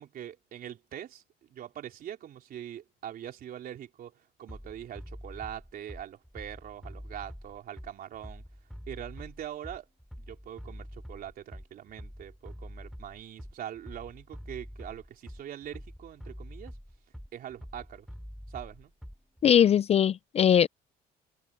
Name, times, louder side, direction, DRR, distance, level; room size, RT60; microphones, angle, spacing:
voice 1, 0.0-8.4 8.9-9.9 10.2-16.8 17.3-18.1 18.5-18.9, right 10 dB, 60° right, 3.7 m, -43 dB
Bass drum, 4.5-19.5, equal, ahead, 2.9 m, -45 dB
voice 2, 19.4-20.7, left 9 dB, 40° left, 0.4 m, -21 dB
cardioid pair, 110°, 17 cm